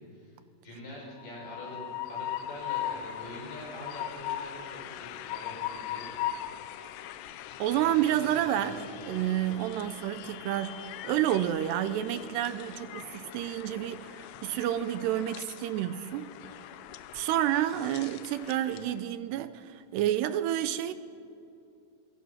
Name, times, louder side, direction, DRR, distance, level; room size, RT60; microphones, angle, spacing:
voice 1, 0.6-1.8 2.1-6.9 7.7-9.1, left 1 dB, 50° left, 7.5 m, -45 dB
Train, 1.2-19.0, left 11 dB, 85° left, 2.9 m, -40 dB
voice 2, 7.6-8.8 9.1-16.3 17.1-20.9, right 12 dB, 80° right, 2.8 m, -29 dB
26.5 x 23.0 x 5.8 m
omnidirectional pair, 5.0 m